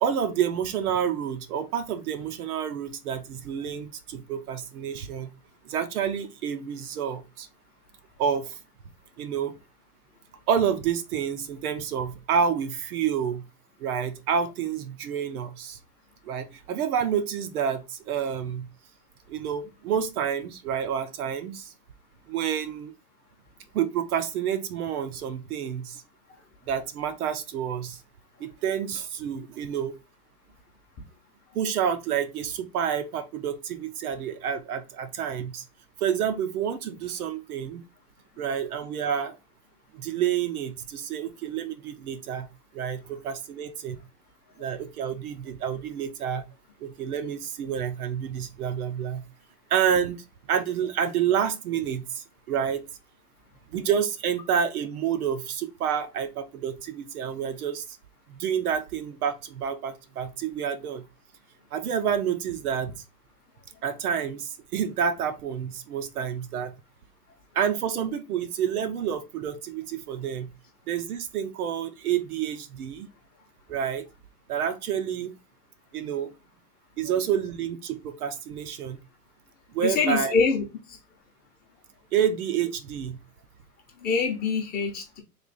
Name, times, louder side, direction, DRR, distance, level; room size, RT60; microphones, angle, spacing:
voice 1, 0.0-5.3 5.7-7.5 8.2-8.5 9.2-9.5 10.5-13.4 13.8-15.8 16.3-18.7 19.3-21.7 22.3-22.9 23.7-26.0 26.7-28.0 28.4-29.9 31.5-35.6 36.0-37.8 38.4-39.4 39.9-42.5 42.7-44.0 44.6-46.4 46.8-49.2 49.7-52.8 53.7-57.8 58.3-61.0 61.7-63.0 63.8-66.7 67.5-70.5 70.9-73.1 73.7-74.1 74.5-75.4 75.9-76.3 77.0-79.0 79.7-80.3 82.1-83.2, right 8 dB, 65° right, 0.8 m, -29 dB
voice 2, 79.8-81.0 84.0-85.2, left 5 dB, 20° left, 0.7 m, -25 dB
3.3 x 2.5 x 4.0 m
hypercardioid pair, 135°, 48 cm